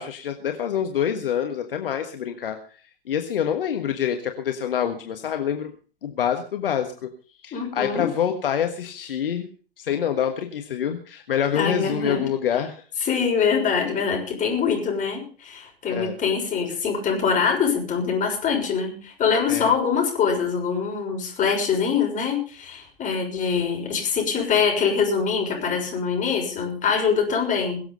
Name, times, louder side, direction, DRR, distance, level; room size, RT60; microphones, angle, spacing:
voice 1, 0.0-2.6 3.1-5.7 6.0-7.1 7.4-9.5 9.8-12.8 15.9-16.1 19.5-19.7, left 9 dB, 65° left, 6 dB, 1.6 m, -26 dB
voice 2, 7.5-8.1 11.5-12.3 13.0-27.8, left 6 dB, 25° left, 1 dB, 6.4 m, -24 dB
22.5 x 7.8 x 5.5 m, 0.40 s
figure-of-eight pair, 100°, 30 cm